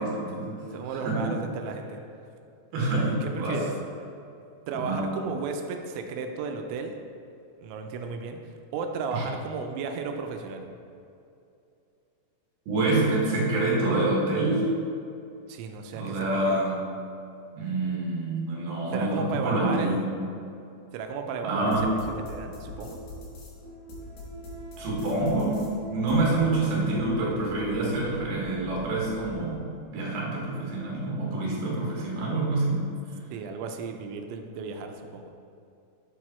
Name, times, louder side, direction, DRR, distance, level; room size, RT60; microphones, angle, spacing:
voice 1, 0.0-0.6 1.0-1.3 2.7-3.6 4.7-5.1 9.1-9.2 12.7-14.7 15.9-16.8 17.5-20.1 21.4-21.9 24.8-32.9, right 2 dB, 65° right, -4 dB, 3.1 m, -27 dB
voice 2, 0.7-2.0 2.9-3.7 4.7-7.0 7.6-8.4 8.7-10.7 15.5-16.6 18.9-20.1 20.9-22.0 22.3-23.0 33.3-35.3, right 5 dB, 90° right, 5 dB, 2.9 m, -34 dB
sound 1, 21.6-29.6, equal, 65° left, 2.7 m, -41 dB
7.6 x 4.7 x 4.2 m, 2.6 s
omnidirectional pair, 5.2 m